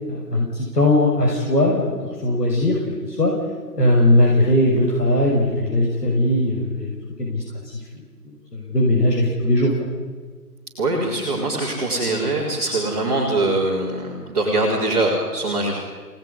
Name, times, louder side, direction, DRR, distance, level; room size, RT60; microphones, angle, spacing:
voice 1, 0.1-3.3 3.8-8.0 8.5-9.7, left 1 dB, 75° left, -2 dB, 6.3 m, -19 dB
voice 2, 10.8-15.7, right 2 dB, 25° right, -5 dB, 4.3 m, -22 dB
28.0 x 19.0 x 9.9 m, 1.5 s
figure-of-eight pair, 170°, 48 cm